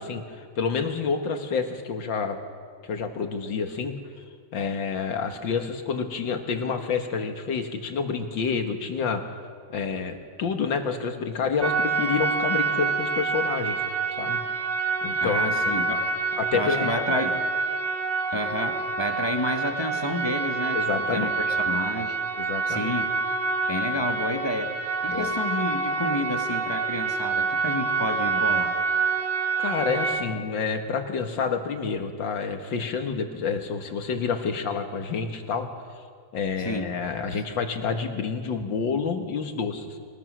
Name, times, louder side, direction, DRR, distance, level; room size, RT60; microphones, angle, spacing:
voice 1, 0.0-2.4 2.8-3.9 4.5-9.2 9.7-13.8 14.2-14.4 15.0-15.8 16.4-17.2 20.7-21.3 22.4-22.9 25.1-25.3 29.6-35.7 36.3-40.0, left 5 dB, 80° left, 6 dB, 2.3 m, -28 dB
sound 1, 11.6-30.2, right 4 dB, 40° right, 2.4 m, -27 dB
voice 2, 15.2-16.1 16.5-17.4 18.3-22.2 22.7-23.1 23.7-28.8 36.6-36.9 37.3-37.4, left 1 dB, 15° left, 4 dB, 1.3 m, -30 dB
24.0 x 20.0 x 6.3 m, 2.1 s
omnidirectional pair, 2.0 m